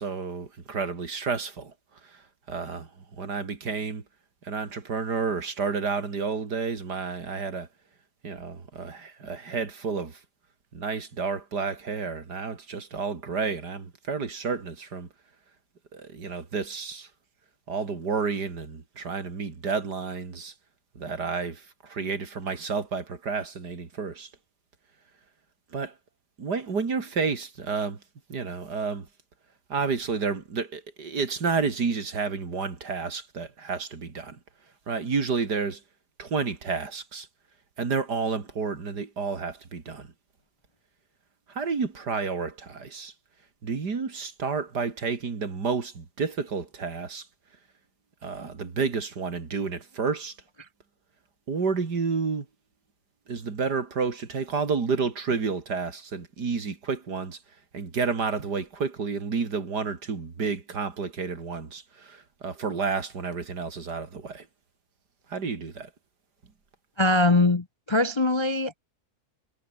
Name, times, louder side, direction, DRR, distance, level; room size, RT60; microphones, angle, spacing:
voice 1, 0.0-1.7 2.0-4.0 4.4-7.7 8.2-10.2 10.7-15.1 15.9-17.1 17.7-20.5 20.9-24.3 25.7-25.9 26.4-28.0 28.3-29.1 29.7-34.4 34.9-35.8 36.2-37.3 37.8-40.1 41.5-43.1 43.6-47.3 48.2-50.4 51.5-52.5 53.3-57.4 57.7-64.5 65.3-65.9, right 5 dB, 80° right, 3.3 m, -30 dB
voice 2, 67.0-68.8, left 2 dB, 25° left, 0.6 m, -22 dB
omnidirectional pair, 1.7 m